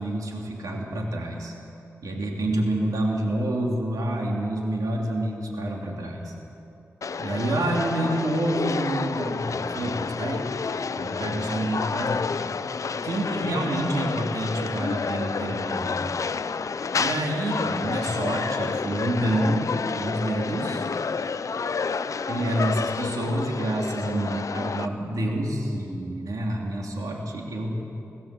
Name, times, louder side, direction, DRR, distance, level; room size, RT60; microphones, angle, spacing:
voice 1, 0.0-1.5 2.0-6.3 7.2-10.5 10.9-12.2 13.0-16.0 17.0-20.8 22.3-27.7, right 1 dB, 90° right, -1 dB, 3.0 m, -28 dB
sound 1, 7.0-24.9, left 5 dB, 65° left, 0.6 m, -30 dB
20.5 x 16.5 x 7.6 m, 2.7 s
cardioid pair, 60°, 6 cm